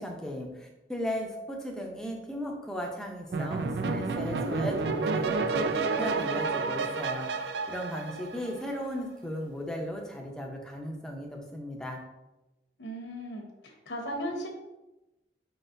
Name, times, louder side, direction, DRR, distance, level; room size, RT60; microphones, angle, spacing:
voice 1, 0.0-12.0, equal, 5° left, 0 dB, 0.6 m, -36 dB
sound 1, 3.3-8.8, right 4 dB, 70° right, 0.3 m, -30 dB
voice 2, 12.8-14.5, equal, 85° left, 1 dB, 1.0 m, -36 dB
5.2 x 3.9 x 2.6 m, 0.98 s
head